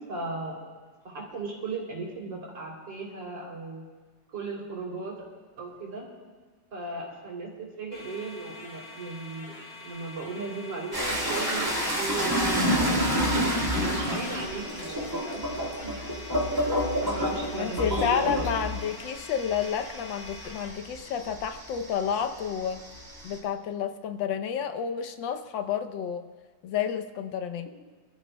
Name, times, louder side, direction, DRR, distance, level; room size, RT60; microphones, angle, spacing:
voice 1, 0.1-0.6 1.0-3.8 4.3-5.1 5.6-6.1 6.7-9.5 9.8-13.2 13.7-16.0 17.0-18.5, right 3 dB, 80° right, -2 dB, 3.8 m, -36 dB
sound 1, 7.9-20.7, left 2 dB, 75° left, 3.4 m, -45 dB
sound 2, 10.9-21.9 22.2-23.4, equal, 10° right, 2.3 m, -28 dB
voice 2, 17.6-22.8 23.2-26.3 26.6-27.7, left 8 dB, 90° left, 8 dB, 1.5 m, -30 dB
28.0 x 13.5 x 2.2 m, 1.4 s
omnidirectional pair, 2.0 m